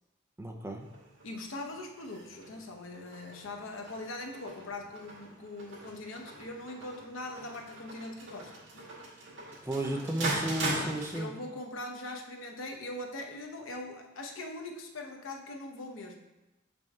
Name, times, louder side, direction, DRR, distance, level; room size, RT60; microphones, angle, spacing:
voice 1, 0.4-0.9 9.6-11.3, right 1 dB, 10° right, 2 dB, 0.5 m, -33 dB
sound 1, 0.8-11.2, right 2 dB, 70° right, 2.1 m, -41 dB
voice 2, 1.2-8.5 10.3-16.2, left 2 dB, 90° left, 3 dB, 0.9 m, -41 dB
6.6 x 5.3 x 3.5 m, 1.1 s
head